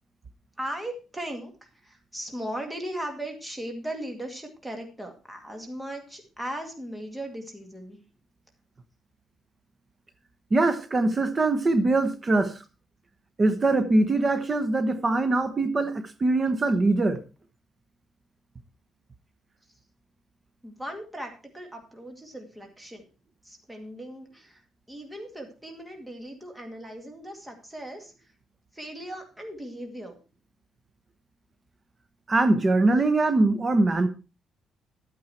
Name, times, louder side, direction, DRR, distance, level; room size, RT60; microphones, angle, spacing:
voice 1, 0.6-8.0 20.6-23.1 23.4-24.6 24.9-28.1 28.7-30.1, right 1 dB, 5° right, 2.1 m, -38 dB
voice 2, 10.5-12.6 13.4-17.2 32.3-34.1, right 2 dB, 25° right, 1.0 m, -22 dB
12.0 x 8.9 x 4.4 m
cardioid pair, 140°, 0 cm